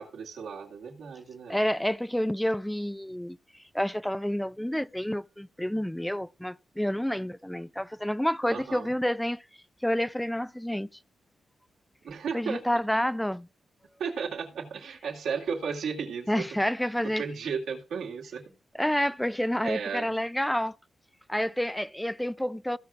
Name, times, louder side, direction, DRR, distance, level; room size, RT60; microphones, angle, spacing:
voice 1, 0.0-1.6 8.5-8.9 12.0-12.6 14.0-16.5 17.2-18.4 19.6-20.1, right 6 dB, 85° right, 2.2 m, -34 dB
voice 2, 1.5-3.4 3.7-9.4 9.8-10.9 12.3-13.5 16.3-17.2 18.8-20.7 21.3-22.8, equal, 5° left, 0.4 m, -29 dB
15.5 x 5.9 x 3.7 m
cardioid pair, 70°, 0 cm